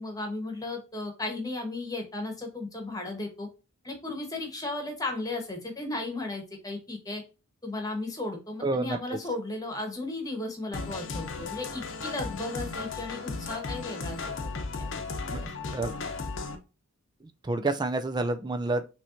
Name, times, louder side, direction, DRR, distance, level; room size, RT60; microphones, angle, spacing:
voice 1, 0.0-3.5 3.8-7.2 7.6-14.5 14.8-15.0 15.4-15.5, left 2 dB, 15° left, 1.2 m, -35 dB
voice 2, 8.6-9.0 15.3-15.9 17.4-18.9, right 2 dB, 20° right, 0.3 m, -29 dB
sound 1, 10.7-16.6, left 4 dB, 55° left, 0.8 m, -35 dB
6.0 x 3.1 x 2.6 m
head